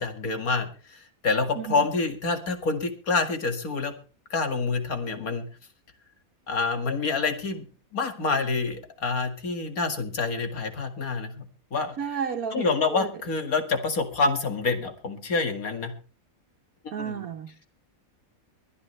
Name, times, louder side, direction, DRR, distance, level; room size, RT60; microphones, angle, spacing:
voice 1, 0.0-3.9 4.3-5.5 6.5-7.6 7.9-11.5 11.7-11.9 12.5-15.9 17.0-17.2, left 4 dB, 75° left, 2.4 m, -27 dB
voice 2, 12.0-13.1 16.9-17.7, right 7 dB, 80° right, 1.4 m, -32 dB
23.0 x 9.6 x 3.2 m
omnidirectional pair, 1.5 m